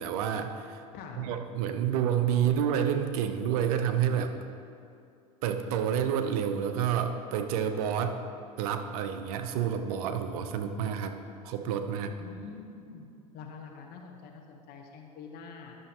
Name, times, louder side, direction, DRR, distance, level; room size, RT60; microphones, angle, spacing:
voice 1, 0.0-0.8 1.1-4.3 5.4-8.2 8.6-12.2, right 8 dB, 70° right, 8 dB, 0.7 m, -29 dB
voice 2, 0.9-1.3 12.2-13.1 13.3-15.8, left 5 dB, 55° left, 2 dB, 1.2 m, -45 dB
11.0 x 6.8 x 2.9 m, 2.5 s
hypercardioid pair, 90°, 19 cm